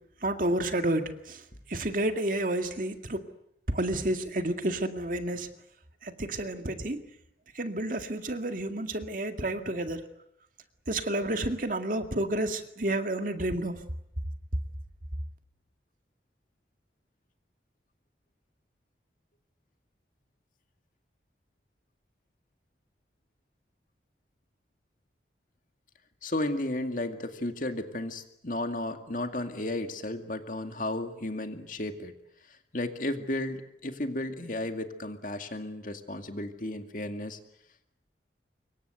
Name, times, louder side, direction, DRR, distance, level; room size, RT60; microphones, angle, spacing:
voice 1, 0.2-1.4 1.7-3.2 3.7-5.5 6.0-7.0 7.6-10.0 10.9-13.8, right 1 dB, 50° right, 2.0 m, -30 dB
voice 2, 26.2-32.1 32.5-37.4, left 1 dB, 50° left, 2.2 m, -34 dB
26.0 x 23.0 x 8.2 m
head